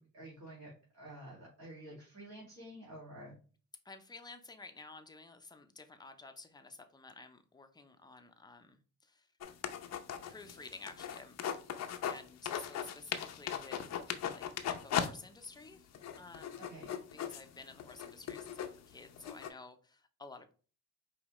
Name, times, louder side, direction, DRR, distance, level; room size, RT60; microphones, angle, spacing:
voice 1, 0.0-3.4 16.6-17.0, right 1 dB, 60° right, -6 dB, 2.3 m, -50 dB
voice 2, 3.8-9.3 10.3-11.4 12.0-14.5 14.8-16.8 17.1-20.5, left 3 dB, 15° left, 7 dB, 0.6 m, -52 dB
sound 1, 9.4-12.2 12.5-15.1 15.4-15.5 15.9-19.5, left 9 dB, 60° left, 0.7 m, -38 dB
5.0 x 2.8 x 3.1 m, 0.39 s
cardioid pair, 90°, 30 cm